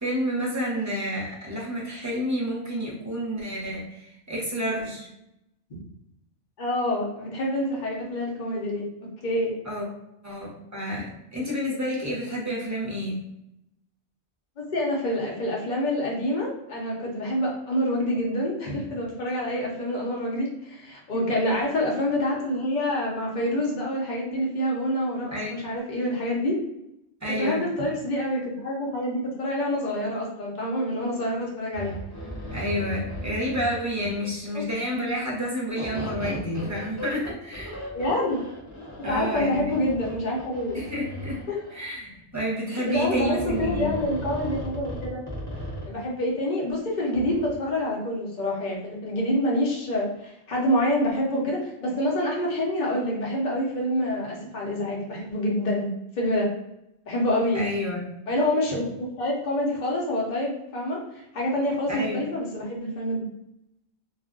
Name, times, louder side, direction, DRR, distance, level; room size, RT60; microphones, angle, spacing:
voice 1, 0.0-5.1 9.6-9.9 10.2-13.2 21.3-21.4 25.3-25.6 27.2-27.7 32.5-37.8 39.0-39.7 40.7-41.4 41.7-43.9 57.5-58.1 61.9-62.2, equal, 20° right, -4 dB, 0.7 m, -29 dB
voice 2, 6.6-8.9 9.2-9.5 14.6-26.6 27.4-31.9 34.5-34.7 37.9-38.4 39.0-40.8 41.5-41.6 42.7-45.2 45.8-55.9 56.2-56.5 57.1-57.6 58.3-61.0 61.3-63.3, left 1 dB, 45° left, -3 dB, 0.8 m, -27 dB
sound 1, 31.7-34.4 35.8-41.9 42.9-45.9 47.1-47.5, equal, 15° left, 0.8 m, -36 dB
2.4 x 2.1 x 3.6 m, 0.83 s
omnidirectional pair, 1.2 m